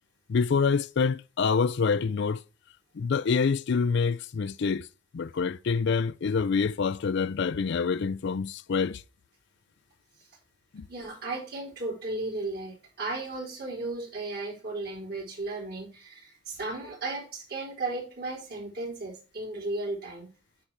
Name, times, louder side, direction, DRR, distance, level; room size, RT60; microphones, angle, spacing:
voice 1, 0.3-2.4 3.0-4.9 5.1-9.0 10.7-10.9, left 5 dB, 55° left, 0.4 m, -26 dB
voice 2, 10.9-20.3, right 2 dB, 50° right, 3.5 m, -35 dB
8.4 x 5.2 x 4.5 m
head